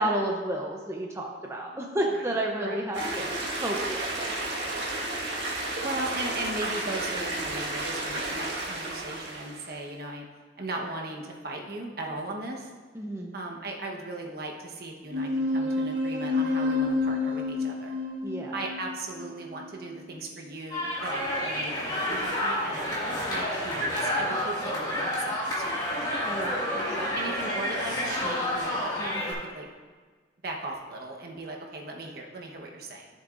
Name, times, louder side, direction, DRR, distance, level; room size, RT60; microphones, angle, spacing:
voice 1, 0.0-4.4 12.9-13.3 18.2-18.6 26.2-27.4, right 1 dB, 15° right, 0 dB, 0.6 m, -31 dB
voice 2, 1.4-1.8 2.1-2.8 4.6-4.9 5.8-10.2 10.6-12.7 13.3-18.0 18.5-23.0 23.3-25.9 27.1-29.7 30.4-33.1, right 2 dB, 55° right, 0 dB, 1.1 m, -38 dB
sound 1, 2.9-9.8, right 2 dB, 70° right, 1.6 m, -32 dB
sound 2, 15.1-20.1, left 3 dB, 90° right, 1.1 m, -29 dB
sound 3, 20.7-29.3, left 1 dB, 25° left, 2.1 m, -29 dB
13.0 x 7.3 x 2.5 m, 1.5 s
head